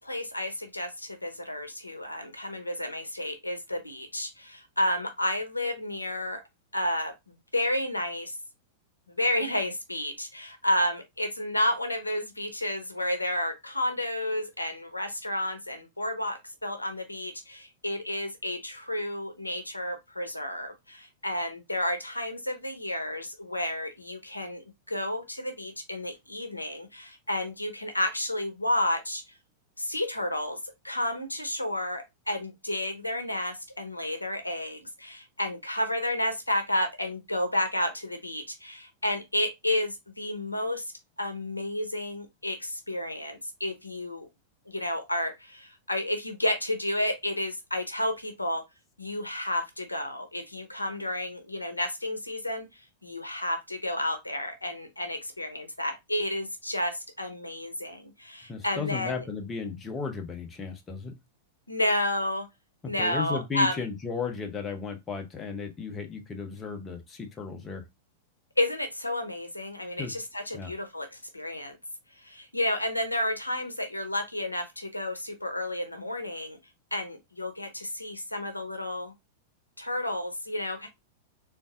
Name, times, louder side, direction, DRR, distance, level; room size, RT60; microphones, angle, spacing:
voice 1, 0.0-6.4 6.7-7.1 7.5-8.3 9.2-24.6 24.9-29.2 29.8-30.6 30.8-40.8 41.2-44.3 44.7-48.6 49.0-52.7 53.0-59.2 61.7-62.5 62.9-63.8 68.6-71.8 72.2-76.6 76.9-79.1 79.8-80.9, left 1 dB, 90° left, 0.7 m, -31 dB
voice 2, 58.5-61.1 62.8-67.8 70.0-70.1 70.5-70.7, left 5 dB, 20° left, 0.8 m, -34 dB
3.6 x 2.5 x 2.5 m
figure-of-eight pair, 95°, 0 cm